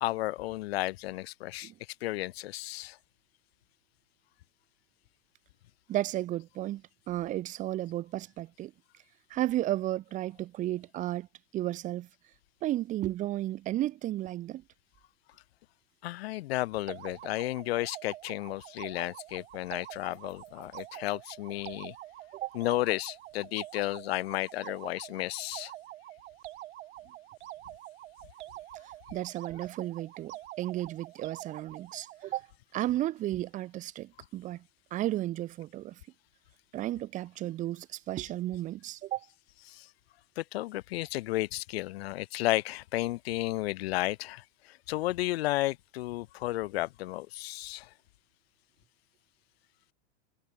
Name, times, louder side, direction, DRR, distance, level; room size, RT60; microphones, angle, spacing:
voice 1, 0.0-1.7 2.0-3.0 16.0-21.9 22.5-25.7 39.6-39.9 40.4-47.9, left 17 dB, 55° left, 0.8 m, -33 dB
voice 2, 5.9-8.7 9.3-11.3 11.5-12.1 12.6-14.6 22.4-22.5 29.1-32.5 32.7-34.6 34.9-36.0 36.7-39.2, right 14 dB, 20° right, 0.9 m, -33 dB
sound 1, 16.9-32.3, right 15 dB, 70° right, 0.9 m, -46 dB
supercardioid pair, 150°, 36 cm